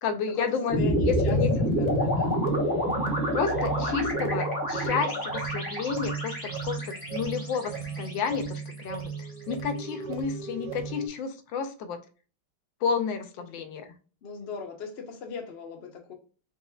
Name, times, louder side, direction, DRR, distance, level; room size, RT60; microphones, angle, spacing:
voice 1, 0.0-0.8 1.1-1.5 3.3-9.1 9.5-12.0 12.8-13.9, left 6 dB, 75° left, 1.2 m, -31 dB
sound 1, 0.7-9.0, left 1 dB, 15° left, 0.9 m, -28 dB
sound 2, 0.7-11.1, right 6 dB, 70° right, 1.2 m, -35 dB
voice 2, 0.8-2.4 14.2-16.1, left 5 dB, 60° left, 0.6 m, -38 dB
4.2 x 3.9 x 2.3 m
omnidirectional pair, 2.2 m